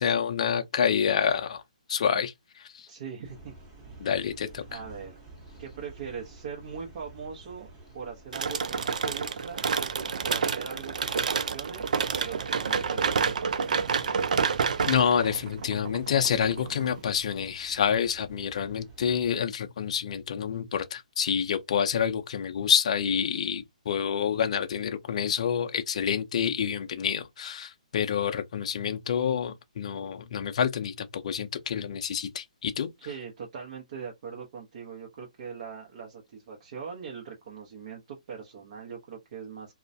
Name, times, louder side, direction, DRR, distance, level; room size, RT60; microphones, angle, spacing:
voice 1, 0.0-1.6 1.9-2.9 4.0-4.6 14.9-32.9, left 7 dB, 55° left, 0.4 m, -28 dB
voice 2, 2.9-3.5 4.7-5.2 5.6-7.7 7.9-9.7 10.2-13.7 33.0-39.7, right 6 dB, 50° right, 0.8 m, -41 dB
sound 1, 3.2-19.3, right 3 dB, 20° right, 1.0 m, -49 dB
sound 2, 8.3-17.0, right 6 dB, 75° right, 0.4 m, -29 dB
2.3 x 2.1 x 2.6 m
hypercardioid pair, 150°, 4 cm